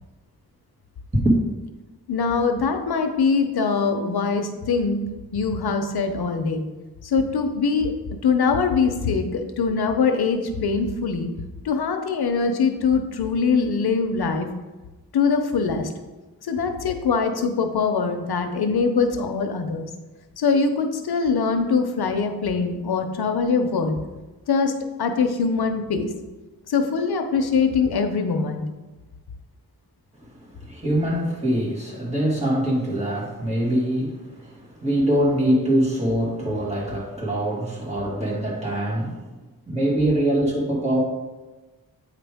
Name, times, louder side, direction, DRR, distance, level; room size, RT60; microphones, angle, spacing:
voice 1, 2.1-5.0 5.3-6.6 7.0-7.9 8.2-11.3 11.6-14.5 15.1-15.9 16.4-19.9 20.4-24.0 24.5-24.7 25.0-26.1 26.7-28.6, left 5 dB, 90° left, 5 dB, 0.8 m, -22 dB
voice 2, 30.5-39.3 39.7-41.0, right 1 dB, 15° right, -4 dB, 2.1 m, -23 dB
8.7 x 4.9 x 3.5 m, 1.2 s
wide cardioid pair, 100°, 37 cm